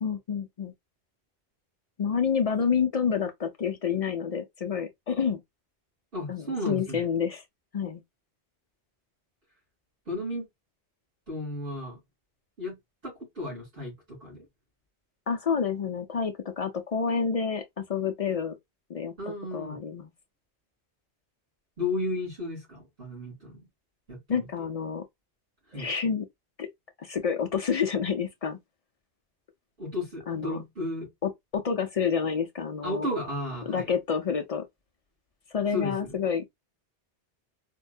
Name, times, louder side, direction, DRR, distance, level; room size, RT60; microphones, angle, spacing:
voice 1, 0.0-0.7 2.0-5.4 6.3-7.4 7.7-8.0 15.3-18.5 18.9-19.1 19.5-20.1 24.3-25.0 25.7-26.3 26.6-26.7 27.0-28.6 30.3-30.6 31.2-33.1 33.7-34.6 35.5-36.5, left 6 dB, 55° left, 0.4 m, -28 dB
voice 2, 6.1-7.0 10.1-10.5 11.3-12.0 12.6-12.8 13.0-14.4 19.2-19.8 21.8-23.7 24.1-24.5 25.7-25.9 29.8-31.1 32.8-33.9 35.7-36.2, left 2 dB, 55° right, 2.9 m, -34 dB
4.4 x 2.1 x 2.4 m
omnidirectional pair, 1.1 m